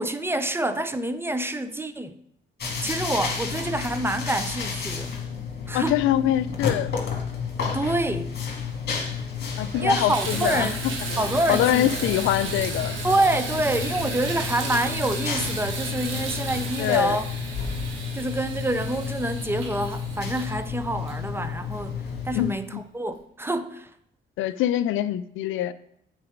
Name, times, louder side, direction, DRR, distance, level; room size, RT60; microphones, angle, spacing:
voice 1, 0.0-2.2 2.8-5.1 5.7-6.0 7.7-8.4 9.8-10.8 11.2-11.9 13.0-17.3 18.1-23.9, right 1 dB, 10° right, 0.5 m, -27 dB
sound 1, 2.6-22.5, left 6 dB, 55° left, 2.0 m, -32 dB
voice 2, 5.7-6.9 9.6-10.8 11.5-13.0 16.8-17.2 22.3-22.6 24.4-25.7, left 12 dB, 80° left, 0.4 m, -24 dB
Water tap faucet / Bathtub (filling or washing), 8.9-9.0 9.4-21.8 22.5-22.6 23.1-23.2, right 3 dB, 80° right, 1.6 m, -34 dB
7.7 x 4.0 x 5.0 m
cardioid pair, 90°, 20 cm